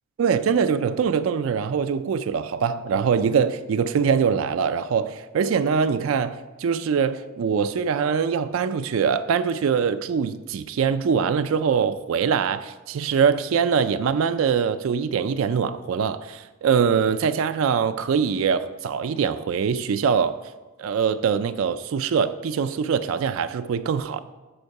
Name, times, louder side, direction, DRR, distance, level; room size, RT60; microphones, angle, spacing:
voice 1, 0.2-20.4 20.8-24.2, right 6 dB, 80° right, 0.3 m, -23 dB
7.9 x 6.6 x 4.7 m
head